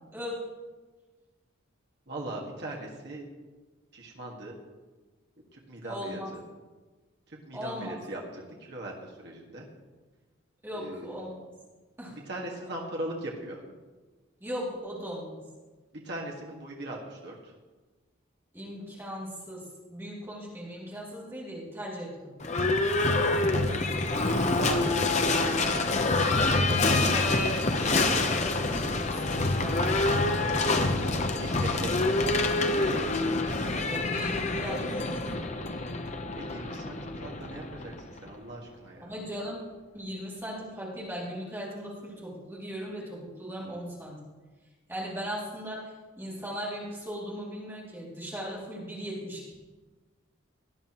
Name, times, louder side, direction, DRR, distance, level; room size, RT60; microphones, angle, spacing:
voice 1, 2.1-3.3 3.9-4.5 5.5-6.2 7.3-9.6 10.8-11.1 12.1-13.6 16.0-17.5 23.4-25.9 30.6-30.9 31.3-32.4 36.3-39.1, right 1 dB, 55° right, -2 dB, 1.8 m, -40 dB
voice 2, 5.8-6.3 7.5-7.9 10.6-11.5 12.0-12.2 14.4-15.4 18.5-22.1 27.1-29.9 33.8-35.3 39.0-39.6 39.9-44.2 44.9-45.9 46.2-49.5, equal, 10° right, -6 dB, 2.6 m, -38 dB
Livestock farm animals working animals / Bell, 22.4-38.3, left 2 dB, 35° left, 0.7 m, -26 dB
18.0 x 10.5 x 3.0 m, 1.3 s
head